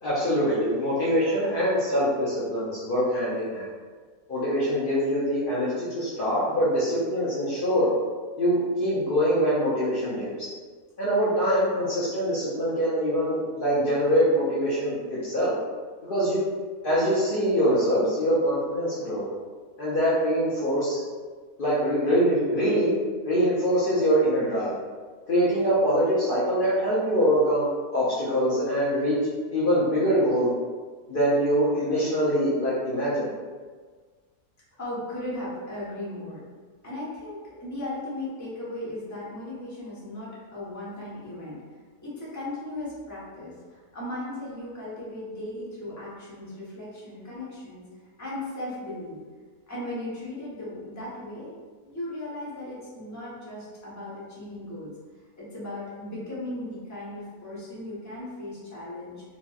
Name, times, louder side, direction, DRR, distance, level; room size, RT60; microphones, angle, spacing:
voice 1, 0.0-3.7 4.3-7.9 8.4-10.5 11.0-15.5 16.1-16.4 16.8-19.3 19.8-21.0 21.6-22.9 23.2-24.7 25.3-29.2 29.5-30.5 31.1-33.3, equal, 85° left, -8 dB, 0.4 m, -24 dB
voice 2, 34.8-36.4 36.8-41.6 42.0-47.8 48.2-49.2 49.7-51.6 51.8-54.9 55.4-59.2, left 1 dB, 15° left, -8 dB, 0.6 m, -37 dB
2.9 x 2.9 x 2.3 m, 1.5 s
omnidirectional pair, 1.7 m